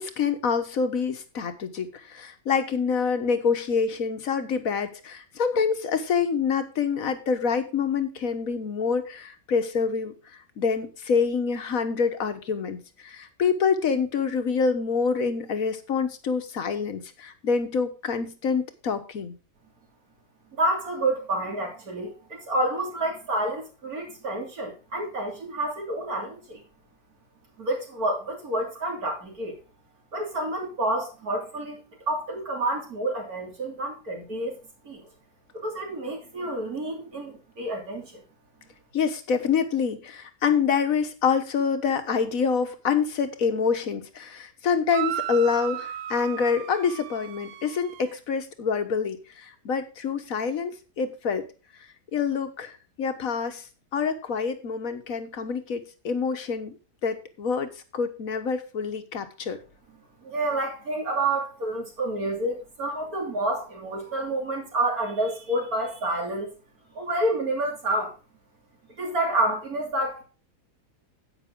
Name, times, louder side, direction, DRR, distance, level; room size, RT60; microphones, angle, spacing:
voice 1, 0.0-10.1 10.6-19.3 38.9-51.4 52.1-53.6 53.9-56.8 57.0-59.6, left 5 dB, 60° left, 8 dB, 1.6 m, -26 dB
voice 2, 20.5-26.6 27.6-29.6 30.1-34.6 34.8-35.0 35.5-38.2 60.2-66.5 67.0-68.1 69.0-70.2, right 1 dB, 60° right, 1 dB, 3.5 m, -29 dB
sound 1, 44.9-48.2, right 12 dB, 90° right, 1.3 m, -35 dB
10.0 x 8.8 x 3.8 m, 0.32 s
omnidirectional pair, 1.7 m